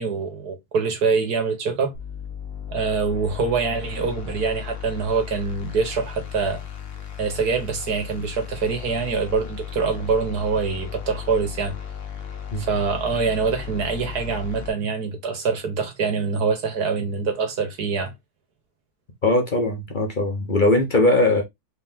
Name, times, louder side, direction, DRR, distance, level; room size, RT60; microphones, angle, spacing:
voice 1, 0.0-1.9 2.7-6.6 7.2-11.7 12.6-18.1, right 5 dB, 90° right, 2.0 m, -24 dB
sound 1, 1.9-14.7, left 8 dB, 55° left, 1.5 m, -35 dB
voice 2, 19.2-21.4, left 2 dB, 35° left, 1.0 m, -20 dB
4.3 x 3.0 x 3.6 m
omnidirectional pair, 1.6 m